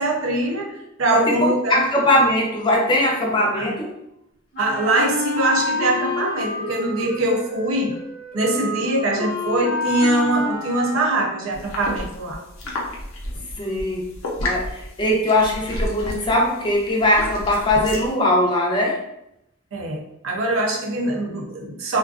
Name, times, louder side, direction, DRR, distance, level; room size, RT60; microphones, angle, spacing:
voice 1, 0.0-1.9 3.6-3.7 4.6-8.0 8.3-12.4 19.7-22.0, right 2 dB, 80° right, 0 dB, 0.5 m, -22 dB
voice 2, 1.1-3.9 13.6-14.1 14.4-19.0, left 1 dB, 25° left, -2 dB, 0.5 m, -20 dB
Wind instrument woodwind instrument, 4.5-11.5, left 2 dB, 50° left, 0.8 m, -28 dB
sound 1, 11.5-18.1, left 1 dB, 85° left, 0.6 m, -32 dB
2.4 x 2.2 x 2.3 m, 0.82 s
head